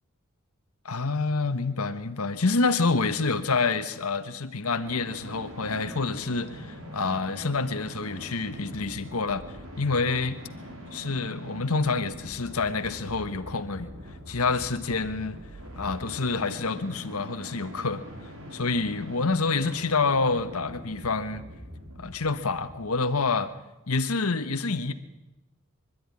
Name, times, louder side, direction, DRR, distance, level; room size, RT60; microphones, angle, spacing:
voice 1, 0.8-9.4 9.8-10.3 10.9-13.9 14.3-15.4 15.8-18.0 18.5-21.4 22.0-23.5 23.9-24.9, left 4 dB, 85° left, 9 dB, 1.3 m, -27 dB
sound 1, 4.8-23.3, equal, 70° right, 5.5 m, -43 dB
25.0 x 12.5 x 9.9 m, 0.96 s
head